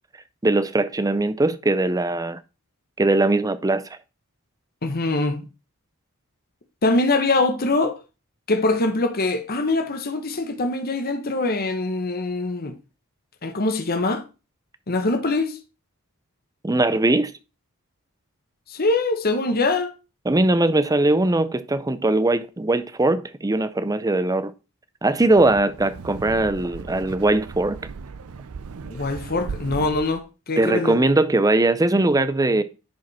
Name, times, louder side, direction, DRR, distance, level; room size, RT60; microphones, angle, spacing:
voice 1, 0.4-2.4 3.0-3.8 16.6-17.3 20.2-24.5 25.0-27.8 30.6-32.6, right 2 dB, 15° right, 0.5 m, -20 dB
voice 2, 4.8-5.4 6.8-8.0 8.5-12.7 13.4-14.2 14.9-15.6 18.7-19.9 28.9-31.0, left 2 dB, 45° left, 1.1 m, -23 dB
Wind, 25.2-30.2, right 4 dB, 75° right, 0.5 m, -37 dB
10.5 x 5.1 x 4.2 m
head